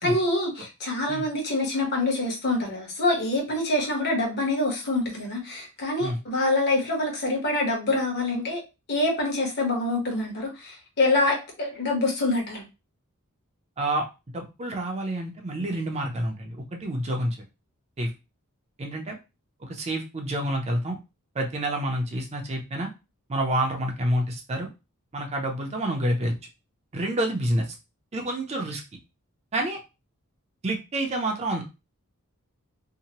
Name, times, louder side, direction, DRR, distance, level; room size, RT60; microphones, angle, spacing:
voice 1, 0.0-8.6 8.9-12.6, left 2 dB, 50° left, 0 dB, 1.1 m, -25 dB
voice 2, 14.3-17.4 18.0-18.1 18.8-19.2 19.6-21.0 21.3-22.9 23.3-24.7 25.1-26.3 26.9-27.7 28.1-28.8 29.5-29.8 30.6-31.7, right 1 dB, 30° right, 2 dB, 0.5 m, -28 dB
2.7 x 2.1 x 2.8 m, 0.26 s
head